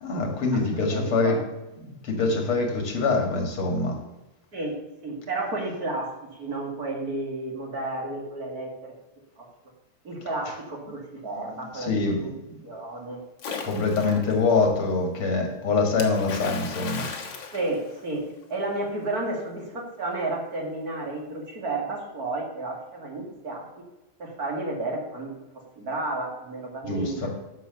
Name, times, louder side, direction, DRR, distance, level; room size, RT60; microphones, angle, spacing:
voice 1, 0.0-1.4 1.8-4.0 11.2-12.3 13.6-17.1 26.8-27.3, left 3 dB, 80° left, 3 dB, 2.9 m, -25 dB
voice 2, 0.9-1.4 4.5-6.1 6.4-8.9 9.4-9.5 10.0-12.3 12.6-13.2 14.0-14.2 17.5-23.6 24.2-25.3 25.8-27.3, right 2 dB, 45° right, 0 dB, 2.6 m, -32 dB
Splash splatter, 13.4-14.3 16.0-18.4, left 5 dB, 60° left, 2.0 m, -36 dB
10.0 x 6.5 x 6.9 m, 0.99 s
omnidirectional pair, 2.4 m